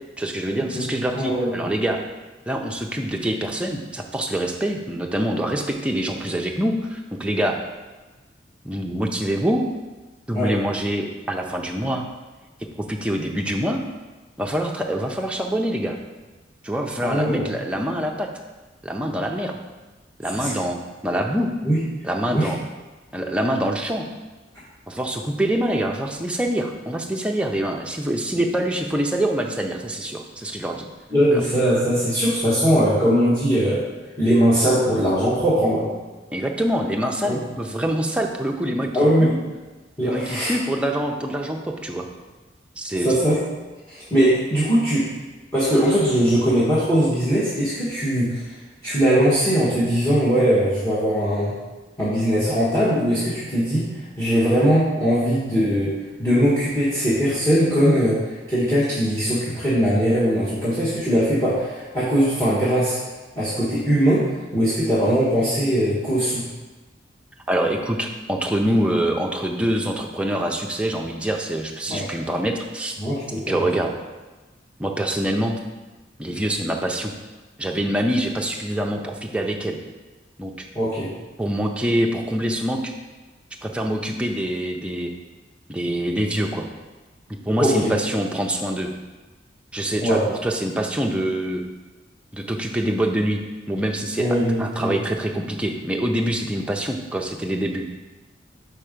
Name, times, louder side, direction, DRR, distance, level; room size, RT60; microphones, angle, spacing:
voice 1, 0.2-2.0 2.5-7.6 8.6-9.7 10.3-12.0 12.8-13.8 14.4-16.0 16.6-18.3 18.8-19.6 20.2-20.8 21.0-21.5 22.0-22.6 23.1-24.1 24.9-30.9 31.3-31.4 36.3-38.9 39.2-39.3 40.0-42.1 42.8-43.1 67.5-73.0 73.5-74.0 74.8-75.6 76.2-77.1 77.6-79.8 80.4-80.7 81.4-82.9 83.6-85.1 85.7-86.7 87.5-88.9 89.7-91.6 92.3-93.4 93.7-94.3 94.6-97.8, right 1 dB, 5° right, 1 dB, 0.5 m, -25 dB
voice 2, 1.1-1.7 10.3-10.5 17.0-17.5 20.2-20.5 21.6-21.8 22.3-22.5 31.1-33.8 34.2-35.9 37.2-37.4 38.9-39.3 40.0-40.5 43.0-43.4 43.9-45.1 45.5-48.5 48.8-51.5 52.0-53.9 54.2-63.0 63.3-64.3 64.5-66.4 71.9-72.1 73.0-73.7 80.7-81.1 87.6-87.9 90.0-90.2 94.2-95.0, equal, 15° left, -10 dB, 1.3 m, -20 dB
4.5 x 4.4 x 5.1 m, 1.2 s
head